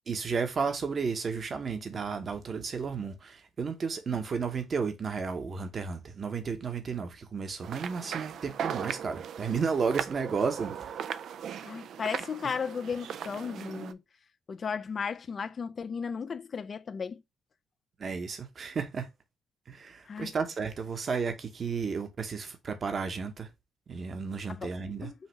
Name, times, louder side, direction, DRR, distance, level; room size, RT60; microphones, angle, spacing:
voice 1, 0.1-11.0 18.0-19.1 19.7-23.5 23.9-25.1, right 5 dB, 50° right, 1.0 m, -33 dB
sound 1, 7.6-13.9, right 8 dB, 70° right, 0.3 m, -38 dB
voice 2, 11.6-14.0 14.5-17.2 20.1-20.3 24.5-24.7 25.0-25.1, left 6 dB, 50° left, 0.4 m, -35 dB
5.5 x 2.6 x 3.1 m
supercardioid pair, 60°, 0 cm